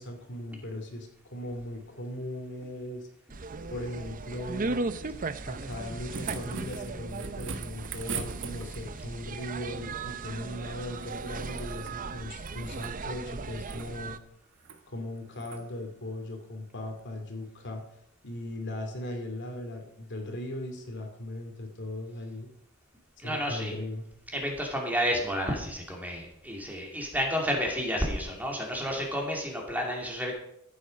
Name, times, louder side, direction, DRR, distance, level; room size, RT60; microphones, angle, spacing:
voice 1, 0.0-3.1 3.7-4.7 5.5-14.2 14.9-17.8 18.2-22.5 23.2-24.1, left 1 dB, 55° left, 3 dB, 2.5 m, -38 dB
sound 1, 3.3-14.2, right 3 dB, 40° right, 0.6 m, -37 dB
sound 2, 5.7-9.0 11.0-12.0 12.3-13.0 13.5-13.9 14.6-14.8 15.4-15.6 17.0-17.1, right 5 dB, 60° right, 1.2 m, -41 dB
voice 2, 23.2-23.7 24.3-30.3, equal, 10° right, 0 dB, 2.6 m, -31 dB
14.5 x 8.4 x 5.3 m, 0.74 s
head